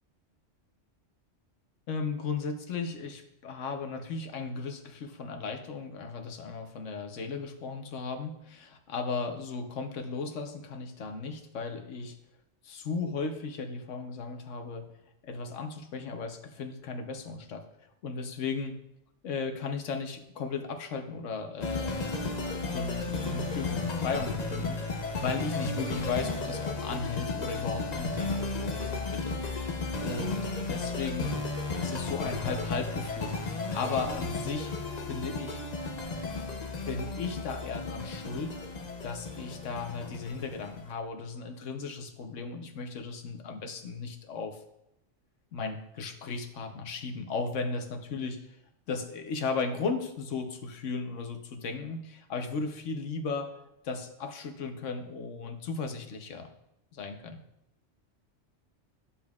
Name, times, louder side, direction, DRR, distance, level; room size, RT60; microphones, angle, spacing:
voice 1, 1.9-12.2 12.6-14.9 15.2-17.6 18.0-18.8 19.2-22.4 22.7-29.4 30.0-31.4 31.8-34.7 35.0-35.6 36.9-38.6 39.0-44.6 45.5-48.4 48.9-53.5 53.8-56.5 56.9-57.4, left 4 dB, 85° left, 6 dB, 1.2 m, -36 dB
sound 1, 21.6-40.9, left 3 dB, 40° left, 0.7 m, -34 dB
10.5 x 7.2 x 2.4 m, 0.81 s
omnidirectional pair, 1.2 m